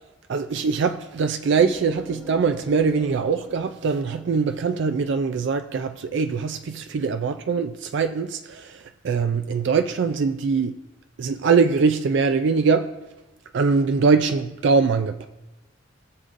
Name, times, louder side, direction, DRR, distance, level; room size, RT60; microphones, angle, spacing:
voice 1, 0.3-10.8 11.2-12.9 13.5-15.3, right 5 dB, 65° right, 0.4 m, -22 dB
sound 1, 1.6-5.2, right 1 dB, 15° right, 1.0 m, -44 dB
20.0 x 6.8 x 2.5 m
head